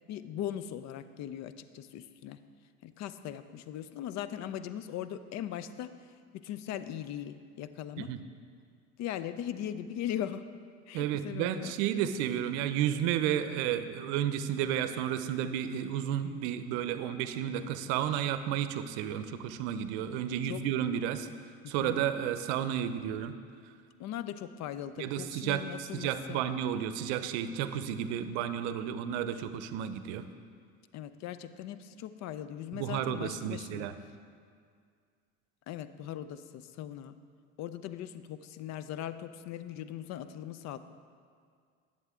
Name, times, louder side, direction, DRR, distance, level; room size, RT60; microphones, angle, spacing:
voice 1, 0.1-2.4 2.8-5.9 6.3-8.1 9.0-10.4 10.9-11.8 20.4-20.6 21.6-22.0 24.0-26.4 30.9-33.9 35.7-37.2 37.6-40.8, left 11 dB, 50° left, 12 dB, 0.5 m, -39 dB
voice 2, 10.9-21.3 21.7-23.3 25.0-30.3 32.7-33.9, right 10 dB, 75° right, 11 dB, 0.6 m, -32 dB
11.0 x 7.3 x 3.7 m, 2.1 s
supercardioid pair, 85°, 34 cm